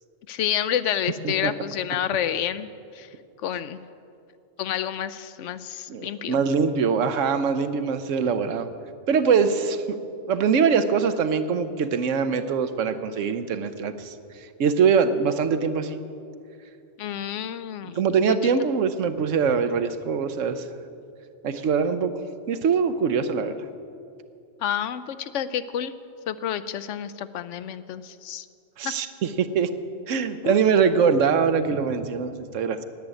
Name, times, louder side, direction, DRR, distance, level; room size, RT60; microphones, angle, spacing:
voice 1, 0.3-2.7 2.9-3.1 3.4-3.8 4.6-6.4 17.0-18.1 24.6-25.9 26.3-28.5 28.8-28.9 30.4-30.6, left 10 dB, 75° left, 14 dB, 0.9 m, -29 dB
voice 2, 5.9-8.7 9.1-10.0 10.3-14.1 14.6-16.0 17.8-20.6 21.4-22.1 22.5-23.7 28.8-29.7 30.1-32.9, right 6 dB, 80° right, 11 dB, 1.1 m, -23 dB
10.5 x 9.5 x 9.0 m, 2.5 s
omnidirectional pair, 1.3 m